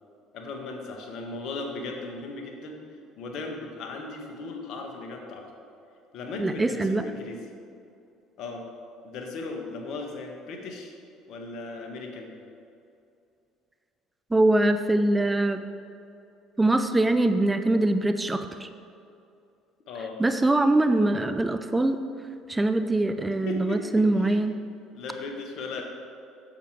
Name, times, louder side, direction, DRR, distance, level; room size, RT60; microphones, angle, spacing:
voice 1, 0.3-2.8 3.2-5.5 6.1-7.4 8.4-8.6 9.0-10.9 11.3-12.3 19.9-20.2 23.4-24.4 24.9-25.8, left 3 dB, 65° left, 2 dB, 1.6 m, -36 dB
voice 2, 6.4-7.0 14.3-15.6 16.6-18.7 20.2-22.0 22.5-24.5, right 2 dB, 15° right, 9 dB, 0.6 m, -23 dB
9.3 x 7.4 x 4.8 m, 2.6 s
hypercardioid pair, 65°, 0 cm